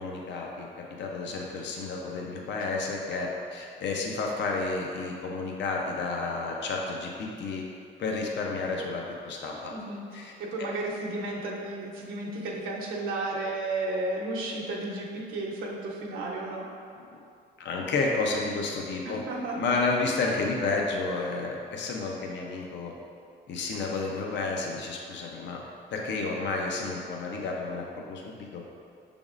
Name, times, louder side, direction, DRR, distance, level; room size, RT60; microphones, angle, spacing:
voice 1, 0.0-7.7 8.0-9.7 10.1-10.3 17.6-19.2 19.5-22.9 23.5-25.6 25.9-28.6, left 3 dB, 65° left, -1 dB, 0.6 m, -31 dB
voice 2, 9.7-10.0 10.4-16.6 19.0-19.7, right 2 dB, 90° right, -4 dB, 0.8 m, -33 dB
6.1 x 3.5 x 2.4 m, 2.4 s
cardioid pair, 90°, 20 cm